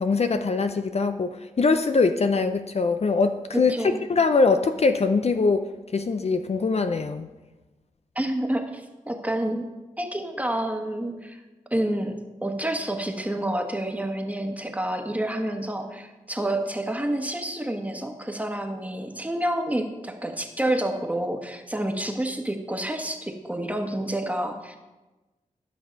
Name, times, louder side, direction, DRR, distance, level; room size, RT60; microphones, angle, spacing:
voice 1, 0.0-3.7 4.1-5.7 5.9-7.3, left 4 dB, 50° left, 8 dB, 0.5 m, -22 dB
voice 2, 3.5-4.0 8.1-9.6 10.0-11.4 11.7-24.8, right 1 dB, 10° right, 4 dB, 1.3 m, -29 dB
11.5 x 6.0 x 5.2 m, 1.1 s
cardioid pair, 60°, 14 cm